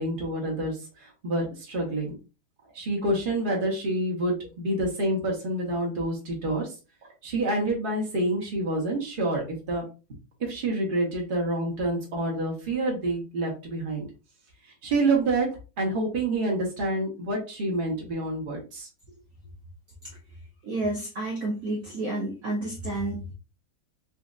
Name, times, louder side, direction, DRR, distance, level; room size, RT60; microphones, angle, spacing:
voice 1, 0.0-2.2 2.7-6.7 7.2-9.8 10.4-14.0 14.8-15.5 15.8-18.9, right 2 dB, 35° right, -1 dB, 1.0 m, -27 dB
voice 2, 20.6-23.3, right 2 dB, 70° right, 0 dB, 0.8 m, -30 dB
4.2 x 2.5 x 2.4 m, 0.31 s
omnidirectional pair, 2.2 m